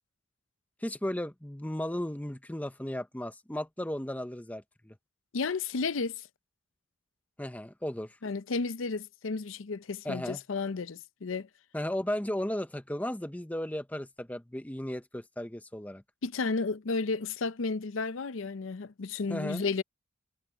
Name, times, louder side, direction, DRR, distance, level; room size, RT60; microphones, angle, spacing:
voice 1, 0.8-5.0 7.4-8.2 10.0-10.4 11.7-16.0 19.3-19.7, left 1 dB, 10° left, 0.8 m, -35 dB
voice 2, 5.3-6.3 8.2-11.5 16.2-19.8, left 4 dB, 80° left, 0.6 m, -32 dB
head